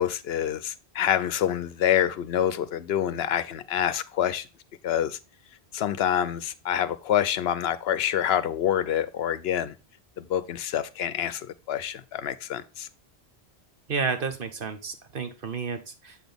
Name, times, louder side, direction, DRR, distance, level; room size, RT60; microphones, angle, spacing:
voice 1, 0.0-4.5 4.8-5.2 5.7-9.7 10.2-12.9, left 10 dB, 75° left, 0.8 m, -27 dB
voice 2, 13.9-16.2, right 5 dB, 55° right, 1.2 m, -31 dB
7.7 x 6.1 x 3.4 m
omnidirectional pair, 1.1 m